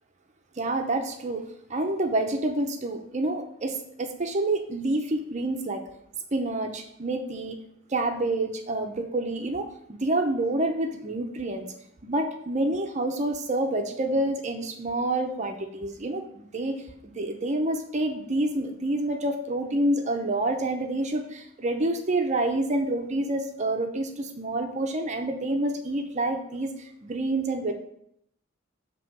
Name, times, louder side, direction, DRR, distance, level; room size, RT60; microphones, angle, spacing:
voice 1, 0.6-5.9 6.3-7.6 7.9-11.7 12.0-27.7, right 2 dB, 35° right, 4 dB, 0.6 m, -28 dB
7.3 x 3.0 x 5.9 m, 0.73 s
head